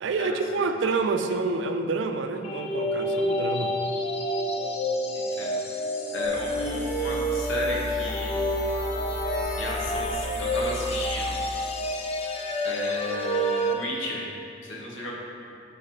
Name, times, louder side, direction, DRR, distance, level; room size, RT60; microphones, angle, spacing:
voice 1, 0.0-3.7, right 3 dB, 70° right, 7 dB, 0.4 m, -27 dB
sound 1, 2.4-13.7, equal, 30° left, 0.5 m, -29 dB
voice 2, 5.1-5.8 6.1-8.4 9.6-11.3 12.6-14.3 14.6-15.1, left 1 dB, 85° left, -3 dB, 1.3 m, -34 dB
sound 2, 6.2-11.3, equal, 60° left, 0.9 m, -35 dB
9.5 x 3.6 x 3.9 m, 2.6 s
head